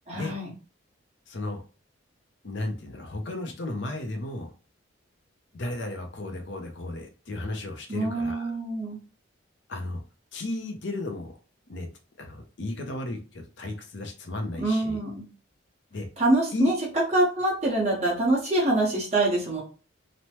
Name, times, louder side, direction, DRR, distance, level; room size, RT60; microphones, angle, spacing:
voice 1, 0.1-0.5 7.9-9.0 14.6-15.2 16.2-16.7 17.1-19.6, right 2 dB, 35° right, -4 dB, 1.1 m, -25 dB
voice 2, 1.3-1.6 2.4-4.5 5.5-8.5 9.7-10.0 10.3-11.3 11.7-11.9 12.2-15.0 15.9-16.1 16.5-16.7, left 2 dB, 60° left, 4 dB, 0.5 m, -34 dB
3.0 x 2.1 x 2.9 m, 0.35 s
head